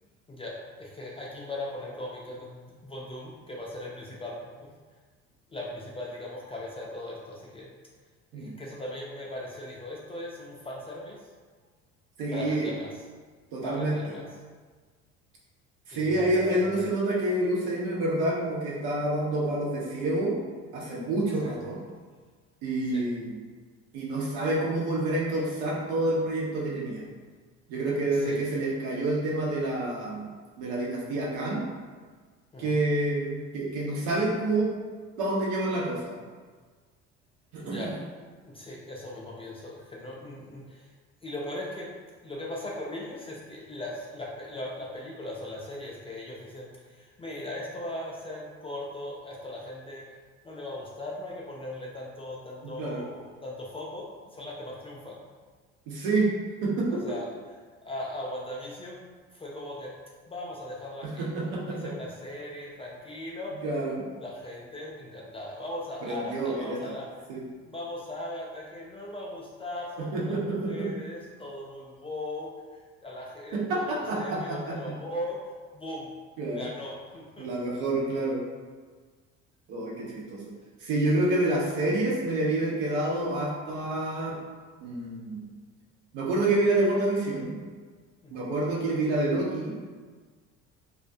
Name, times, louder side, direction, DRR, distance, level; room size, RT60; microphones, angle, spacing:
voice 1, 0.3-4.7 5.5-7.7 8.3-11.3 12.3-13.0 13.6-14.3 15.9-16.8 21.4-21.6 22.9-23.0 28.1-28.4 32.5-32.8 37.6-37.9 38.4-40.9 41.2-41.9 42.2-50.2 50.4-55.2 56.9-57.3 57.8-59.1 59.3-59.9 60.3-61.4 61.7-63.6 64.2-67.1 67.6-75.4 75.7-76.1 76.5-77.5 81.2-81.6 88.2-88.5, left 1 dB, 15° left, -3 dB, 0.3 m, -39 dB
voice 2, 12.2-12.7 13.5-14.1 15.9-20.4 20.7-21.8 22.6-23.4 23.9-27.0 27.7-30.3 30.6-31.6 32.6-34.7 35.2-36.1 37.5-37.9 52.6-53.0 55.9-56.3 56.6-57.0 61.0-61.8 63.6-64.0 66.0-66.8 67.3-67.4 70.0-70.9 73.5-74.9 76.4-76.6 77.4-78.4 79.7-80.4 80.8-84.4 84.8-85.4 86.1-87.5 88.3-89.9, right 2 dB, 70° right, -4 dB, 0.8 m, -28 dB
2.3 x 2.1 x 2.6 m, 1.5 s
hypercardioid pair, 60°, 36 cm